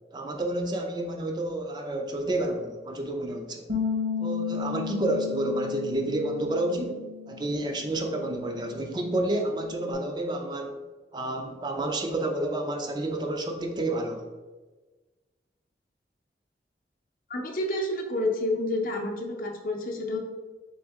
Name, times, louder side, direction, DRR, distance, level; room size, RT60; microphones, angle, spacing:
voice 1, 0.1-3.6 4.2-10.8 11.1-14.2, right 1 dB, 25° right, 3 dB, 0.3 m, -30 dB
Bass guitar, 3.7-9.9, left 7 dB, 85° right, 1.3 m, -35 dB
voice 2, 17.3-20.2, left 1 dB, 50° left, 1 dB, 0.6 m, -29 dB
3.8 x 3.5 x 3.5 m, 1.3 s
head